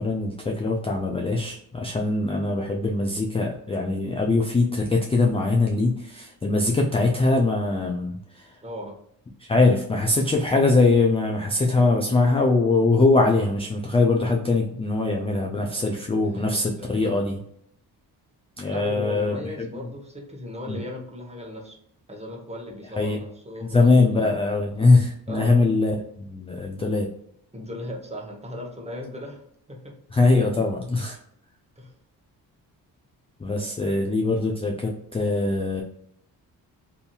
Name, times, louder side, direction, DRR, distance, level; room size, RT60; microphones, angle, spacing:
voice 1, 0.0-8.6 9.4-17.4 18.6-19.7 20.7-20.8 23.0-23.2 23.7-27.1 30.1-31.2 33.4-35.8, left 3 dB, 15° left, 1 dB, 0.4 m, -22 dB
voice 2, 8.6-8.9 16.2-17.0 18.7-21.8 22.1-24.3 25.3-25.6 27.5-30.0 31.8-31.9 33.5-34.0, left 1 dB, 15° right, 0 dB, 0.9 m, -37 dB
2.7 x 2.6 x 2.3 m, 0.69 s
supercardioid pair, 60°, 42 cm